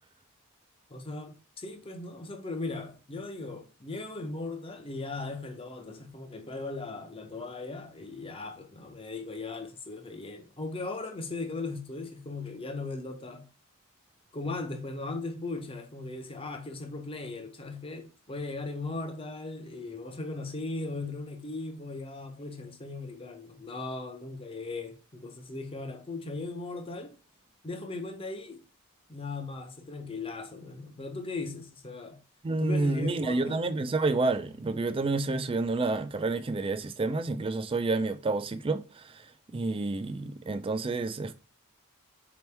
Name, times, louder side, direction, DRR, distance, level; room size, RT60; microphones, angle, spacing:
voice 1, 0.9-13.5 14.3-27.2 27.6-28.6 29.1-32.2 32.6-33.7, left 3 dB, 25° left, 0.7 m, -38 dB
voice 2, 32.4-39.2 39.5-41.3, right 3 dB, 25° right, 0.3 m, -29 dB
4.3 x 3.0 x 3.3 m
head